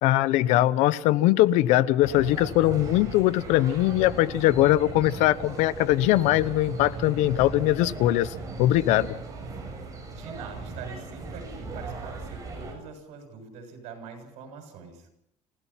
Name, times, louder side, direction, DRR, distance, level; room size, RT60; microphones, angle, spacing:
voice 1, 0.0-9.1, left 15 dB, 90° left, 17 dB, 1.0 m, -21 dB
sound 1, 2.0-12.7, right 3 dB, 30° right, 7.2 m, -38 dB
voice 2, 10.2-15.1, right 5 dB, 80° right, 5 dB, 7.3 m, -43 dB
28.5 x 17.0 x 5.9 m, 0.73 s
cardioid pair, 155°, 11 cm